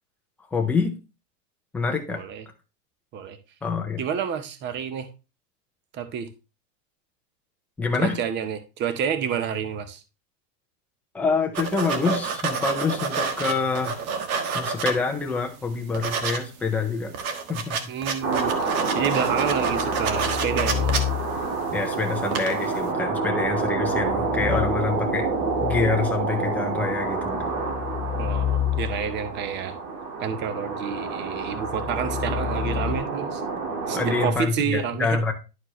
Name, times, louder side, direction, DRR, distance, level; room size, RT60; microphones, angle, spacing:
voice 1, 0.5-0.9 1.7-2.2 3.6-4.0 7.8-8.2 11.1-14.0 14.5-17.1 17.5-17.8 21.7-25.3 25.6-27.5 33.9-35.3, left 4 dB, 5° left, 2 dB, 0.4 m, -26 dB
voice 2, 2.1-2.4 3.1-3.4 4.0-5.1 5.9-6.3 8.0-10.0 17.9-21.0 28.2-29.7 30.2-33.4 33.9-35.2, right 7 dB, 25° right, 11 dB, 0.7 m, -29 dB
sound 1, 11.5-15.3 15.7-16.4 16.7-16.8 17.0-21.9 22.2-22.7, right 5 dB, 60° right, 1.5 m, -29 dB
sound 2, 18.2-34.3, right 4 dB, 90° right, 2.4 m, -28 dB
sound 3, 19.3-21.6 23.7-26.3 26.9-29.4 31.4-33.0, left 10 dB, 40° left, 0.8 m, -30 dB
11.0 x 4.4 x 3.0 m, 0.30 s
supercardioid pair, 145°, 47 cm